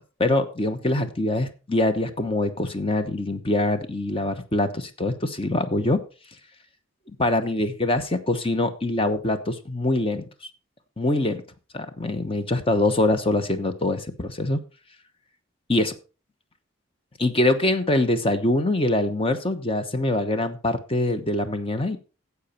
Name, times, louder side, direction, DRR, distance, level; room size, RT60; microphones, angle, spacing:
voice 1, 0.2-6.0 7.2-10.3 11.0-11.4 11.7-14.6 15.7-16.0 17.2-22.0, left 1 dB, 30° left, 9 dB, 1.0 m, -24 dB
12.0 x 8.3 x 4.3 m, 0.33 s
head